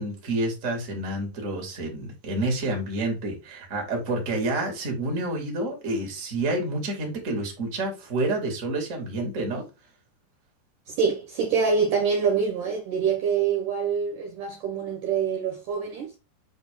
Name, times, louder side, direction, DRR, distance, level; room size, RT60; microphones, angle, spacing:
voice 1, 0.0-9.7, right 2 dB, 25° right, 1.9 m, -29 dB
voice 2, 10.9-16.1, right 6 dB, 65° right, 2.2 m, -25 dB
7.8 x 4.3 x 3.8 m
omnidirectional pair, 4.9 m